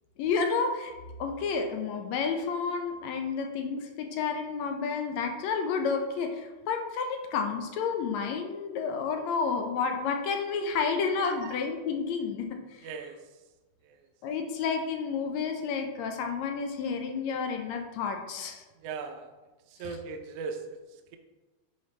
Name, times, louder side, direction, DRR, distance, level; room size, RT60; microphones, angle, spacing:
voice 1, 0.2-0.9 1.2-12.9 14.2-18.6 19.8-20.0, left 5 dB, 75° left, 4 dB, 1.8 m, -30 dB
voice 2, 12.8-13.2 13.9-14.0 18.8-19.3 19.8-20.6, right 5 dB, 75° right, 5 dB, 1.4 m, -37 dB
9.6 x 4.3 x 3.2 m, 1.2 s
omnidirectional pair, 3.4 m